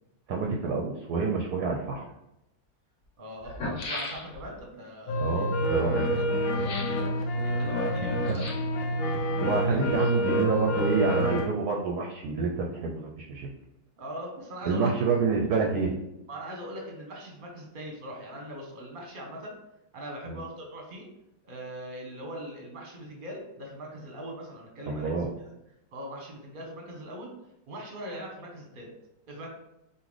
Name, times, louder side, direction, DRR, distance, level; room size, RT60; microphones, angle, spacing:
voice 1, 0.3-2.1 5.2-6.0 8.3-8.4 9.4-13.5 14.7-15.9 20.3-20.4 24.9-25.3, right 4 dB, 70° right, 1 dB, 1.0 m, -28 dB
sound 1, 2.1-2.2 3.0-3.1 3.4-4.6 6.6-7.1 8.2-8.8 9.6-10.4 10.7-10.8, left 2 dB, 55° left, 1.0 m, -37 dB
voice 2, 3.2-6.0 6.6-6.8 7.1-8.6 9.6-9.8 14.0-15.1 16.3-19.6 19.9-21.1 21.5-25.3 25.9-27.3 27.7-28.9 29.3-29.5, equal, 35° right, 0 dB, 0.9 m, -41 dB
sound 2, 5.1-11.5, equal, 80° left, 0.8 m, -27 dB
5.6 x 2.6 x 3.2 m, 0.87 s
omnidirectional pair, 2.1 m